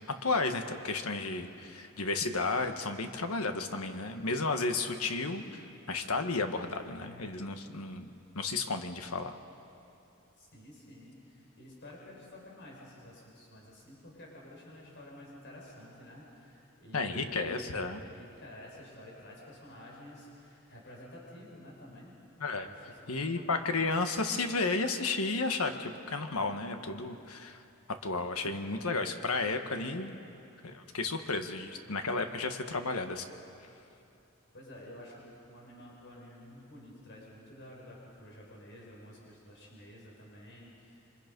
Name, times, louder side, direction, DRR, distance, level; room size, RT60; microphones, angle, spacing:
voice 1, 0.1-5.6 5.9-8.1 8.3-9.4 16.9-18.0 22.4-22.7 23.1-27.6 28.0-30.1 30.6-33.3, left 3 dB, 90° left, 6 dB, 1.5 m, -33 dB
voice 2, 10.4-17.5 18.0-22.1 22.6-23.6 34.5-41.0, left 1 dB, 55° left, -3 dB, 5.4 m, -51 dB
27.5 x 24.0 x 5.4 m, 2.7 s
head